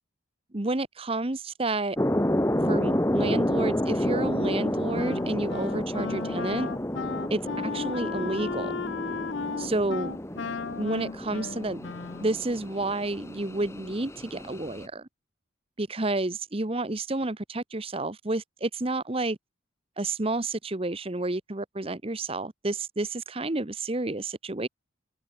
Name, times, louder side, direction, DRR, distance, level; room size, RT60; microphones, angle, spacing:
voice 1, 0.5-2.0 2.7-6.7 7.3-8.7 9.6-10.2 10.8-11.9 12.2-15.1 15.8-19.4 20.0-24.7, right 2 dB, 30° right, 1.0 m, -30 dB
sound 1, 2.0-14.9, left 1 dB, 15° left, 1.2 m, -30 dB
Wind instrument woodwind instrument, 4.9-12.4, left 5 dB, 65° left, 0.6 m, -35 dB
open air
head